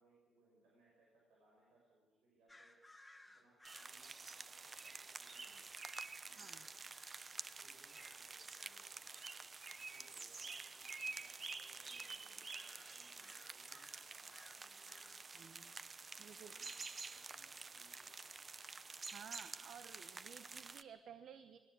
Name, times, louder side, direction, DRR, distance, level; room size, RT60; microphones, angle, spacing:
voice 1, 0.0-2.8 3.3-5.7 6.0-6.7 7.4-9.2 9.7-15.7 16.3-18.4, right 1 dB, 90° right, -3 dB, 6.4 m, -71 dB
sound 1, 2.5-8.8 9.1-9.5 10.6-11.3 11.7-12.0 12.5-15.8 16.4-17.5, left 2 dB, 5° left, 2.1 m, -65 dB
sound 2, 3.6-20.8, right 4 dB, 35° right, 0.8 m, -50 dB
voice 2, 6.4-6.7 15.3-15.7 16.2-16.6 19.0-21.6, right 8 dB, 65° right, 11 dB, 1.0 m, -56 dB
20.5 x 18.0 x 8.2 m, 1.4 s
cardioid pair, 90°, 0 cm